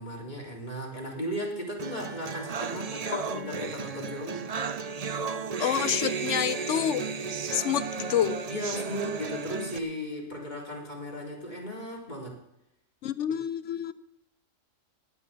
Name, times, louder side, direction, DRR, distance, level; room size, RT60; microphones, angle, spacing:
voice 1, 0.0-4.5 8.5-12.4, equal, 35° left, -2 dB, 3.8 m, -36 dB
sound 1, 1.8-9.8, right 5 dB, 40° right, 0.6 m, -34 dB
voice 2, 3.1-3.7 5.6-7.0 7.5-8.4 13.0-13.9, left 10 dB, 65° left, 14 dB, 1.0 m, -28 dB
18.0 x 9.8 x 5.6 m, 0.81 s
omnidirectional pair, 1.4 m